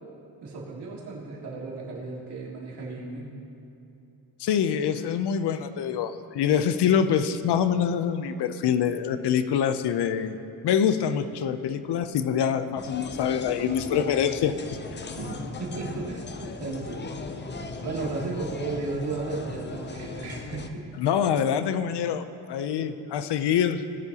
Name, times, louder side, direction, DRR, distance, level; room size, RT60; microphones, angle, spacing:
voice 1, 0.4-3.3 9.2-9.3 15.2-17.4 17.8-20.8 22.8-22.9, right 3 dB, 80° right, -5 dB, 2.6 m, -34 dB
voice 2, 4.4-10.4 10.6-14.5 21.0-23.8, left 8 dB, 85° left, 10 dB, 0.6 m, -25 dB
sound 1, 12.8-20.7, left 4 dB, 30° left, 0.5 m, -38 dB
18.0 x 10.5 x 2.9 m, 2.9 s
wide cardioid pair, 170°, 40 cm